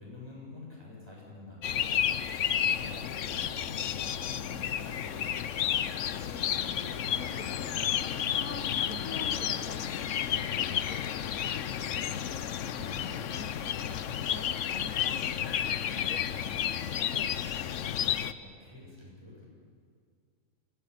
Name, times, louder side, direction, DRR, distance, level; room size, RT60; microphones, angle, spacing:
voice 1, 0.0-1.9 2.5-5.0 12.7-13.0 18.4-19.4, left 3 dB, 20° right, -4 dB, 7.9 m, -48 dB
sound 1, 1.6-18.3, left 9 dB, 65° left, 1.0 m, -31 dB
sound 2, 2.2-14.3, equal, 35° left, 4.7 m, -53 dB
voice 2, 5.9-10.3 10.6-17.5, left 4 dB, 85° left, 7 dB, 1.8 m, -47 dB
25.0 x 15.5 x 8.6 m, 2.1 s
omnidirectional pair, 1.4 m